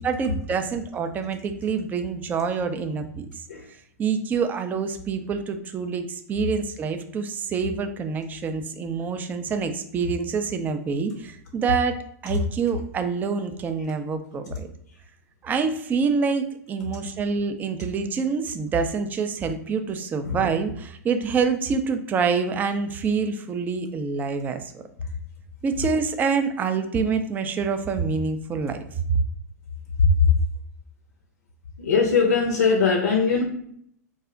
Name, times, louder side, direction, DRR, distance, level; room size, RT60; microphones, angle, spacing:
voice 1, 0.0-3.3 4.0-14.7 15.4-24.8 25.6-28.8, right 5 dB, 20° right, 7 dB, 0.3 m, -26 dB
voice 2, 31.8-33.4, left 5 dB, 70° left, 2 dB, 0.5 m, -21 dB
2.4 x 2.0 x 3.6 m, 0.68 s
hypercardioid pair, 105°, 9 cm